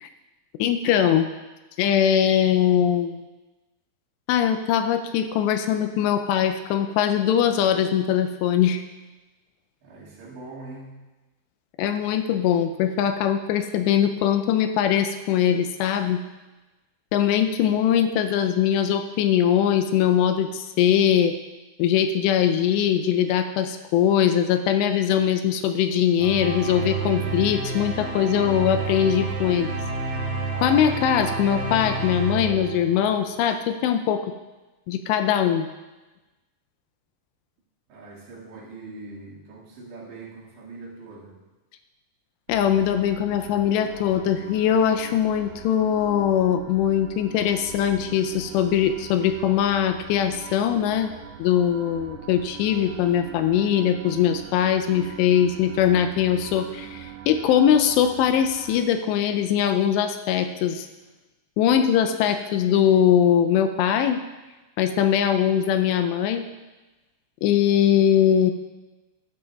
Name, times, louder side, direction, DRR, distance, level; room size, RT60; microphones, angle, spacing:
voice 1, 0.6-1.3 1.8-3.2 4.3-8.8 11.8-16.2 17.1-21.4 21.8-29.7 30.6-34.3 34.9-35.7 42.5-51.1 51.4-60.9 61.6-64.2 64.8-66.5 67.4-68.5, left 9 dB, 85° left, 8 dB, 2.6 m, -21 dB
voice 2, 9.8-11.0 37.9-41.4, right 3 dB, 75° right, -6 dB, 4.1 m, -42 dB
sound 1, 26.2-33.2, right 3 dB, 40° right, 1.9 m, -29 dB
sound 2, 42.5-58.8, right 10 dB, 90° right, 2.9 m, -42 dB
14.5 x 9.6 x 2.3 m, 1.1 s
omnidirectional pair, 5.1 m